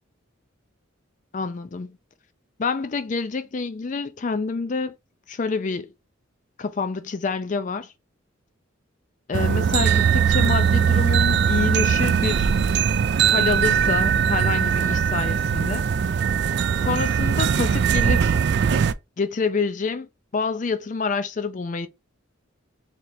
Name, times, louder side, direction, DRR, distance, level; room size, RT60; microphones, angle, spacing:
voice 1, 1.3-2.0 2.6-4.9 5.3-5.9 6.6-7.9 9.3-12.6 13.3-15.8 16.8-18.4 19.2-20.1 20.3-21.9, left 4 dB, 40° left, 0.4 m, -27 dB
sound 1, 9.3-18.9, right 7 dB, 55° right, 0.3 m, -20 dB
3.2 x 2.9 x 4.0 m
head